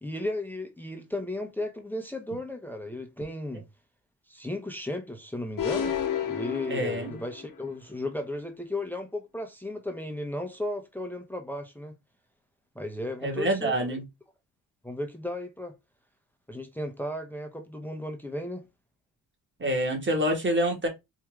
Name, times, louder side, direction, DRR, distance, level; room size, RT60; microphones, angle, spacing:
voice 1, 0.0-3.6 4.3-6.0 6.2-11.9 12.7-13.7 14.8-15.8 16.5-18.6, left 1 dB, 5° left, 0.8 m, -35 dB
sound 1, 5.6-7.6, left 8 dB, 55° left, 1.1 m, -31 dB
voice 2, 6.7-7.2 13.2-14.0 19.6-20.9, right 1 dB, 30° right, 2.0 m, -27 dB
4.5 x 2.8 x 3.6 m
cardioid pair, 90°, 39 cm